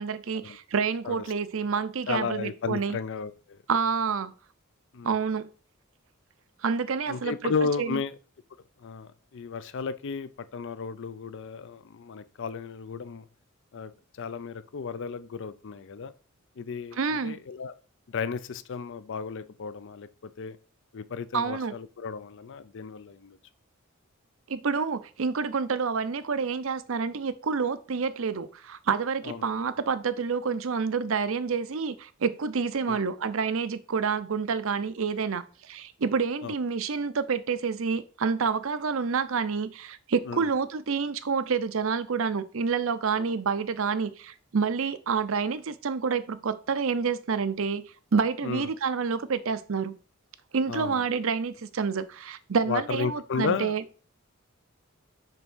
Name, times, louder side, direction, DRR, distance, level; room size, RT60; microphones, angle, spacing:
voice 1, 0.0-3.0 3.7-4.3 5.0-5.5 6.6-7.5 7.8-8.0 16.9-17.4 21.3-21.7 24.5-50.0 50.5-53.8, right 5 dB, 65° right, 0.6 m, -28 dB
voice 2, 2.1-3.6 4.9-5.2 7.1-8.1 8.8-13.3 13.7-13.9 14.2-16.1 16.6-17.8 18.1-20.6 20.9-23.4 29.2-29.4 32.9-33.0 36.4-36.5 40.3-40.5 43.2-43.3 48.4-48.7 50.7-51.0 52.7-53.8, left 5 dB, 60° left, 0.5 m, -34 dB
6.7 x 3.6 x 6.1 m
head